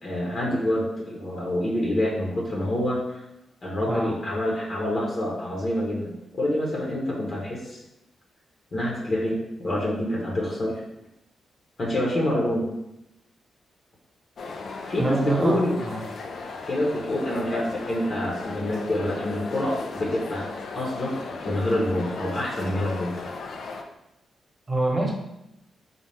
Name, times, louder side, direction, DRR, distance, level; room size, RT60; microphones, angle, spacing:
voice 1, 0.0-3.2 3.6-7.8 8.7-10.8 11.8-12.6 14.8-15.8 16.6-20.5 20.7-23.2, left 1 dB, 50° left, -3 dB, 1.0 m, -27 dB
voice 2, 3.9-4.2 15.0-16.0 24.7-25.1, right 2 dB, 30° right, 0 dB, 1.0 m, -26 dB
sound 1, 14.4-23.8, left 4 dB, 65° left, 0.4 m, -36 dB
4.1 x 2.4 x 3.4 m, 0.88 s
cardioid pair, 60°, 0 cm